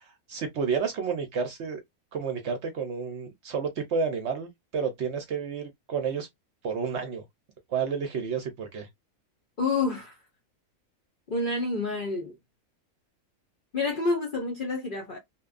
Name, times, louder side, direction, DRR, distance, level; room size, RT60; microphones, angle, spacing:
voice 1, 0.0-1.8 2.1-6.3 6.6-7.2 7.7-8.9, right 6 dB, 65° right, 0.7 m, -30 dB
voice 2, 9.6-10.2 11.3-12.3 13.7-15.2, left 3 dB, 55° left, 0.6 m, -28 dB
2.8 x 2.1 x 2.4 m
omnidirectional pair, 1.5 m